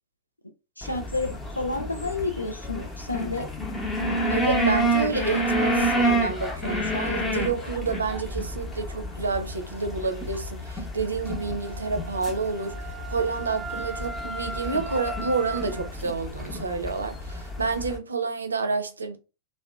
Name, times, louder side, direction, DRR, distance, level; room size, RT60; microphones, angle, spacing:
voice 1, 0.8-1.3 1.6-3.5, left 3 dB, 85° left, 0.4 m, -30 dB
sound 1, 0.8-18.0, right 1 dB, 15° left, 0.7 m, -29 dB
voice 2, 4.3-12.8 13.1-19.2, right 4 dB, 75° right, 0.4 m, -29 dB
Wind instrument woodwind instrument, 11.3-15.9, right 3 dB, 10° right, 0.3 m, -38 dB
2.7 x 2.1 x 2.3 m
figure-of-eight pair, 90°, 0 cm